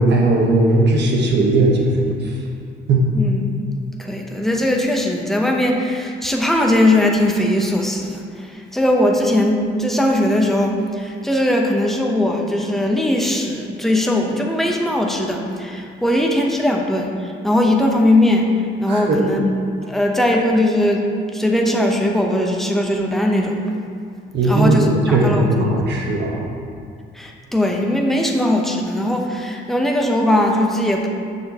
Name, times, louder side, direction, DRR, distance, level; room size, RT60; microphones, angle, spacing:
voice 1, 0.0-2.4 2.9-3.0 18.9-19.2 24.3-26.4, right 2 dB, 60° right, -1 dB, 1.2 m, -17 dB
voice 2, 4.0-18.5 18.8-19.4 19.9-21.0 21.3-23.6 24.5-25.6 27.1-31.2, left 1 dB, ahead, 0 dB, 0.8 m, -19 dB
6.7 x 6.2 x 2.9 m, 2.2 s
cardioid pair, 90°, 20 cm